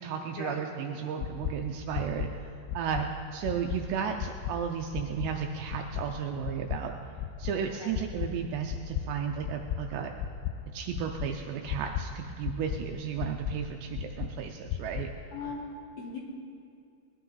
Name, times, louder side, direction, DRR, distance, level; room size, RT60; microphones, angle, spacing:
voice 1, 0.0-2.3 2.7-6.9 7.4-10.1 10.7-15.1, right 7 dB, 80° right, 3 dB, 2.5 m, -34 dB
sound 1, 1.2-1.5 1.9-2.3 2.7-3.0 3.4-3.8 4.2-4.5 4.9-5.3 5.7-6.0 6.4-6.8 7.2-7.5 7.9-8.3 8.7-9.0 9.4-9.8 10.2-10.5 10.9-11.3 11.7-12.0 12.4-12.8 13.2-13.5 13.9-14.3 14.7-15.0, left 12 dB, 85° left, 2.5 m, -33 dB
voice 2, 15.3-16.2, left 3 dB, 65° left, -1 dB, 2.6 m, -39 dB
20.5 x 12.0 x 3.9 m, 2.5 s
omnidirectional pair, 5.5 m